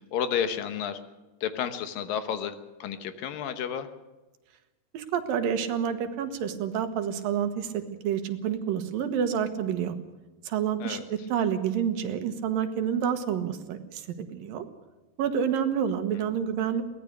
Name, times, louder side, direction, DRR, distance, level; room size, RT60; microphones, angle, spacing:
voice 1, 0.1-1.0 1.4-2.5 2.8-3.9 10.8-11.0, left 8 dB, 75° left, 9 dB, 2.8 m, -31 dB
voice 2, 4.9-10.0 10.4-14.7 15.2-16.8, right 8 dB, 75° right, 8 dB, 3.0 m, -28 dB
22.5 x 17.5 x 6.7 m, 1.1 s
omnidirectional pair, 4.2 m